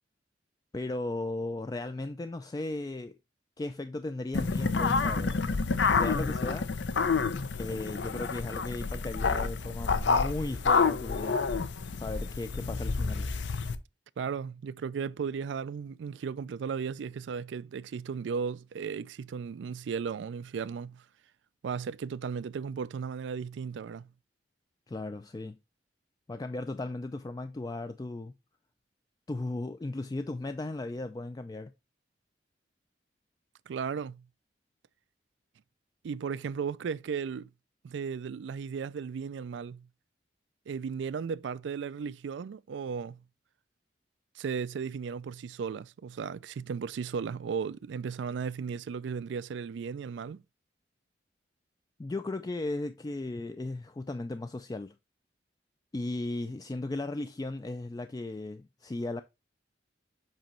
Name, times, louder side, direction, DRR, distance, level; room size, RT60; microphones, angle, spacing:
voice 1, 0.7-3.1 3.6-5.4 5.9-6.7 7.6-11.4 11.9-13.3 24.9-25.6 26.3-28.3 29.3-31.7 52.0-54.9 55.9-59.2, left 2 dB, 20° left, 0.3 m, -36 dB
sound 1, 4.3-13.8, left 4 dB, 80° left, 0.6 m, -29 dB
voice 2, 14.2-21.0 21.6-24.1 33.7-34.3 36.0-37.5 37.8-39.9 40.7-43.2 44.4-50.4, right 6 dB, 85° right, 0.3 m, -35 dB
7.5 x 3.0 x 4.3 m
head